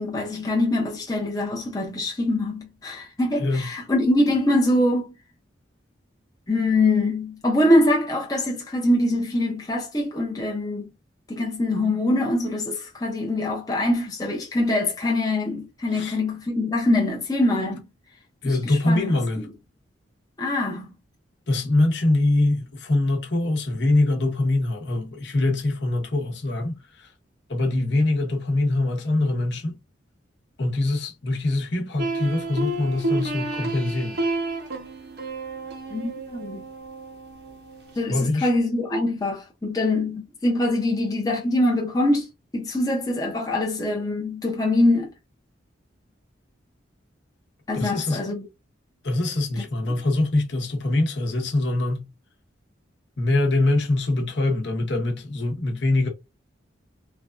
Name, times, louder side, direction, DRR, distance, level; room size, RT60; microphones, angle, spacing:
voice 1, 0.0-5.1 6.5-10.9 11.3-17.9 18.4-19.1 19.4-19.5 20.4-20.9 35.9-36.7 38.0-42.3 42.5-45.1 47.7-48.4, left 1 dB, 20° left, 0.6 m, -23 dB
voice 2, 3.4-3.7 15.9-16.2 18.4-19.5 21.5-27.1 27.5-29.7 30.6-34.2 38.1-38.5 47.7-48.2 49.0-52.0 53.2-56.1, left 2 dB, 65° left, 0.9 m, -23 dB
sound 1, 32.0-38.0, right 2 dB, 55° right, 0.7 m, -31 dB
3.2 x 2.2 x 2.4 m
head